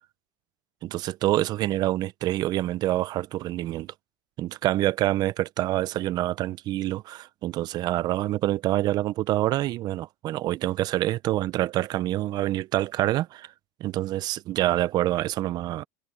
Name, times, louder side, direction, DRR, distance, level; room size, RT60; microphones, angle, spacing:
voice 1, 0.8-3.9 4.4-13.5 13.8-15.8, right 15 dB, 45° right, 0.6 m, -26 dB
supercardioid pair, 120°, 10 cm